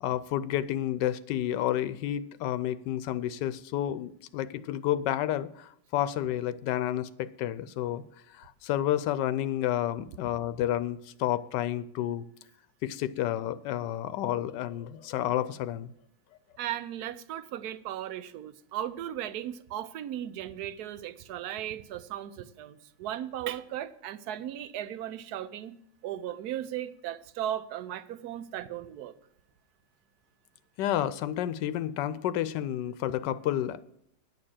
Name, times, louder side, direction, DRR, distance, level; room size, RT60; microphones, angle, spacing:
voice 1, 0.0-8.0 8.3-12.3 12.8-15.9 30.8-33.8, left 12 dB, 90° left, 1.2 m, -30 dB
voice 2, 16.6-25.8 26.0-29.1, right 11 dB, 70° right, 1.1 m, -36 dB
10.0 x 6.6 x 7.4 m
omnidirectional pair, 1.8 m